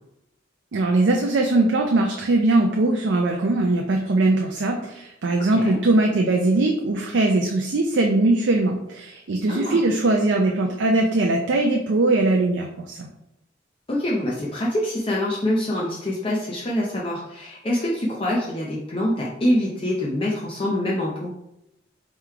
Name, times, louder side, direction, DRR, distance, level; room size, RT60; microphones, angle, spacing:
voice 1, 0.7-13.1, right 2 dB, 70° right, 1 dB, 0.5 m, -21 dB
voice 2, 9.5-9.8 13.9-21.3, left 1 dB, 30° left, -4 dB, 0.6 m, -25 dB
3.7 x 3.1 x 4.4 m, 0.85 s
head